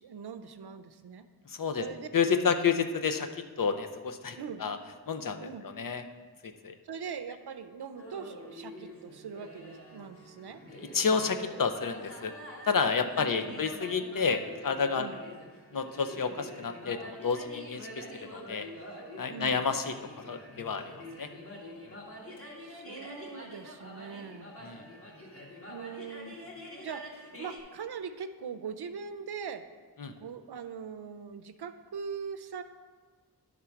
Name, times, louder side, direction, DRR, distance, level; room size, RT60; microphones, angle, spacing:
voice 1, 0.0-1.3 1.7-2.1 4.3-4.7 5.4-5.7 6.8-10.6 13.2-13.8 15.0-15.2 19.3-19.6 22.6-24.6 25.7-26.4 26.8-29.7 30.1-32.6, right 6 dB, 85° right, 10 dB, 0.6 m, -41 dB
voice 2, 1.4-1.8 2.1-4.8 5.1-6.0 6.4-6.8 10.9-12.3 12.6-15.1 15.7-18.7 19.2-20.9 21.2-21.3 21.9-22.0 24.6-24.8 30.0-30.1, left 5 dB, 60° left, 8 dB, 0.6 m, -30 dB
sound 1, 8.0-27.6, equal, 35° left, 1.7 m, -46 dB
11.0 x 3.7 x 5.8 m, 1.4 s
wide cardioid pair, 80°, 38 cm